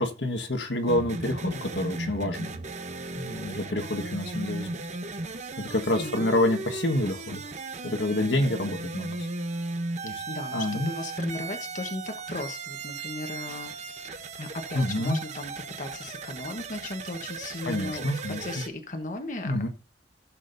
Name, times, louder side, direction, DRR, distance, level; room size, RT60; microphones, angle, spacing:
voice 1, 0.0-2.5 3.1-4.7 5.6-7.4 7.8-9.2 10.0-10.1 10.5-10.9 14.7-15.2 17.6-18.4 19.4-19.7, left 1 dB, 80° left, 1.5 m, -27 dB
sound 1, 0.9-18.7, right 3 dB, 40° right, 0.9 m, -36 dB
voice 2, 5.5-6.3 10.0-15.5 15.8-19.7, left 2 dB, 45° left, 1.2 m, -37 dB
15.5 x 7.3 x 2.7 m
head